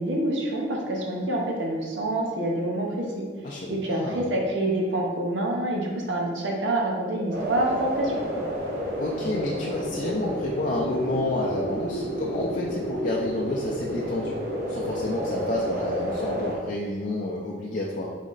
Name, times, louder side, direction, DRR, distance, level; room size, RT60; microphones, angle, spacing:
voice 1, 0.0-3.2 3.7-8.1, right 1 dB, 90° right, -1 dB, 0.8 m, -27 dB
voice 2, 3.4-4.2 9.0-14.4 14.7-18.1, left 1 dB, 45° left, -4 dB, 0.4 m, -29 dB
sound 1, 7.3-16.5, equal, 55° right, 1.2 m, -30 dB
4.0 x 3.1 x 3.8 m, 1.5 s
head